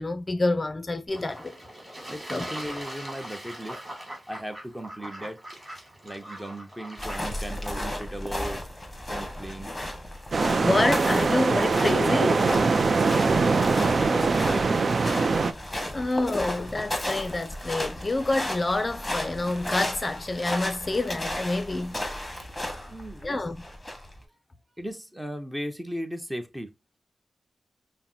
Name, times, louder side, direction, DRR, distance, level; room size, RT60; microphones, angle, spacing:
voice 1, 0.0-1.6 2.3-2.4 10.6-12.5 15.9-22.0 23.2-23.6, left 2 dB, 35° left, 0.5 m, -27 dB
Fowl / Bird / Water, 1.1-7.6, right 1 dB, 25° right, 2.4 m, -41 dB
voice 2, 2.1-3.8 4.3-5.4 6.0-8.6 9.1-9.7 12.9-14.8 22.9-23.4 24.8-26.7, equal, 5° right, 0.9 m, -37 dB
sound 1, 7.0-24.2, left 1 dB, 15° left, 1.3 m, -34 dB
sound 2, 10.3-15.5, right 4 dB, 55° right, 0.4 m, -22 dB
5.6 x 2.1 x 2.7 m
cardioid pair, 70°, 0 cm